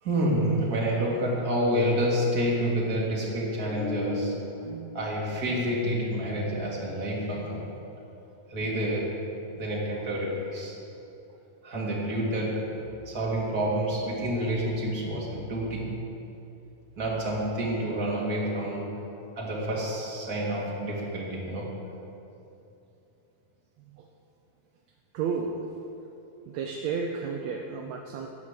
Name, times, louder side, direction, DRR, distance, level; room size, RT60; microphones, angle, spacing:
voice 1, 0.0-4.6 4.9-7.9 8.5-9.3 9.5-10.8 11.6-16.0 17.0-19.0 19.4-21.9, equal, 30° right, -4 dB, 2.6 m, -28 dB
voice 2, 4.6-5.0 5.4-5.6 23.9-24.1 25.1-25.7 26.5-28.3, right 5 dB, 75° right, 2 dB, 1.7 m, -33 dB
11.0 x 10.5 x 7.5 m, 2.8 s
omnidirectional pair, 3.9 m